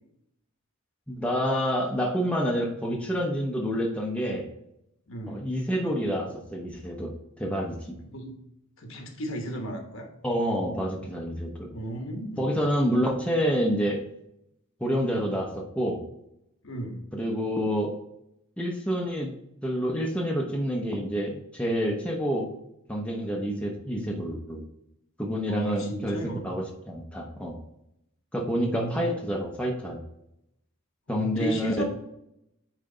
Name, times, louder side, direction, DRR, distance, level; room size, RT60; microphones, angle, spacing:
voice 1, 1.1-4.5 5.3-8.0 10.2-11.7 12.4-14.0 14.8-16.0 17.1-17.9 18.6-19.4 19.6-22.5 22.9-24.6 25.2-27.6 28.3-30.0 31.1-31.8, equal, 5° left, -1 dB, 0.8 m, -28 dB
voice 2, 5.1-5.5 8.0-8.3 8.8-10.1 11.7-12.6 16.6-17.1 25.5-26.4 28.6-29.1 31.1-31.8, right 1 dB, 65° left, 3 dB, 1.2 m, -34 dB
8.6 x 3.3 x 3.8 m, 0.81 s
head